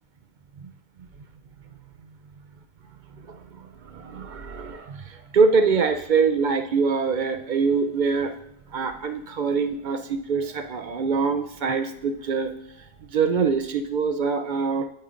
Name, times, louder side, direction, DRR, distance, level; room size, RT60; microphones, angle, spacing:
voice 1, 3.3-3.7 3.9-8.3 8.7-12.5 13.1-14.9, right 5 dB, 55° right, 7 dB, 0.5 m, -24 dB
8.6 x 8.5 x 2.5 m, 0.79 s
omnidirectional pair, 1.2 m